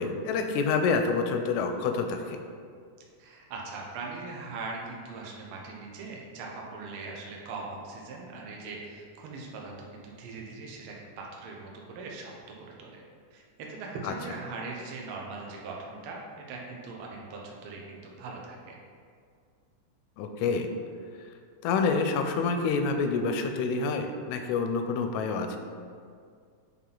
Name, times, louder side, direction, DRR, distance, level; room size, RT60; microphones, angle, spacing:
voice 1, 0.0-2.4 14.0-14.1 20.2-20.7 21.6-25.6, left 4 dB, 80° left, 6 dB, 1.7 m, -27 dB
voice 2, 3.2-12.3 12.8-13.0 13.3-13.4 13.7-18.8, right 3 dB, 85° right, -1 dB, 1.1 m, -40 dB
7.3 x 3.8 x 3.9 m, 2.2 s
omnidirectional pair, 3.6 m